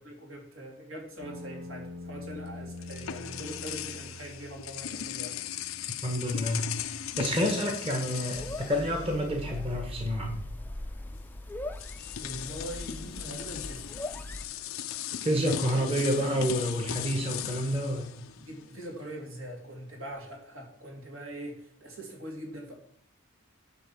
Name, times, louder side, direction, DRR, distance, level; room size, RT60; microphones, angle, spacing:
voice 1, 0.0-5.3 12.2-13.9 15.5-15.9 18.4-22.7, right 1 dB, 75° right, 0 dB, 3.2 m, -42 dB
sound 1, 1.2-15.2, left 1 dB, 90° right, 2.1 m, -49 dB
sound 2, 2.3-9.6 9.8-10.1 11.2-11.3 11.7-18.9, left 10 dB, 75° left, 0.5 m, -38 dB
voice 2, 6.0-10.3 15.2-18.1, equal, 30° right, 2 dB, 1.5 m, -29 dB
sound 3, 8.3-14.5, left 1 dB, 10° left, 0.5 m, -40 dB
10.0 x 3.8 x 7.4 m, 0.64 s
head